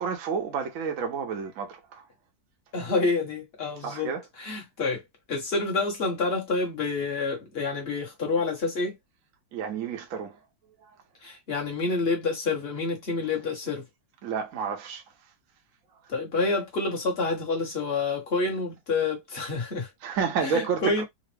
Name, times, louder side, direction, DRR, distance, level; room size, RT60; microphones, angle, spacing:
voice 1, 0.0-2.0 3.8-4.2 9.5-10.4 10.8-10.9 14.2-15.0 20.0-21.0, right 6 dB, 55° right, 0.9 m, -30 dB
voice 2, 2.7-4.1 4.4-5.0 5.3-9.0 11.2-13.9 16.1-19.9 20.4-21.0, left 3 dB, 40° left, 1.2 m, -28 dB
3.9 x 2.0 x 3.2 m
omnidirectional pair, 2.0 m